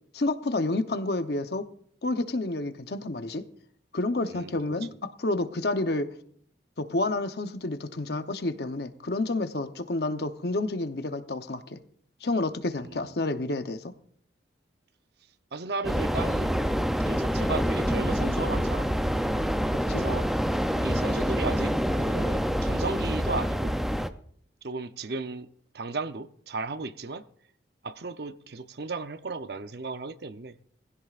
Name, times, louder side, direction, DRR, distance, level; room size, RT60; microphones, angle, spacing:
voice 1, 0.1-1.7 2.0-3.4 3.9-6.1 6.8-11.8 12.2-13.9 19.7-20.0, left 2 dB, 60° left, 0.8 m, -29 dB
voice 2, 4.3-4.9 12.7-13.1 15.5-16.5 17.1-18.9 19.9-20.3 20.8-23.8 24.6-25.5 25.7-27.2 27.8-30.7, right 3 dB, 60° right, 0.7 m, -35 dB
sound 1, 15.8-24.1, equal, ahead, 0.5 m, -26 dB
20.0 x 15.5 x 2.5 m
head